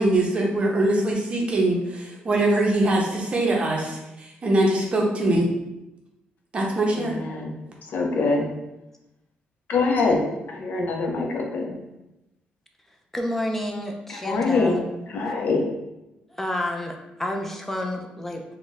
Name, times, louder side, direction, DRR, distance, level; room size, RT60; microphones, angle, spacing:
voice 1, 0.0-5.5 6.5-7.2, right 1 dB, 35° right, -1 dB, 0.7 m, -22 dB
voice 2, 6.9-7.6 7.9-8.5 9.7-10.2 10.5-11.8 14.1-14.8 15.1-15.6, left 3 dB, 60° left, 1 dB, 0.6 m, -24 dB
voice 3, 12.9-14.8 16.3-18.4, left 1 dB, 10° left, 2 dB, 0.4 m, -30 dB
2.5 x 2.2 x 3.9 m, 0.93 s
cardioid pair, 105°, 3 cm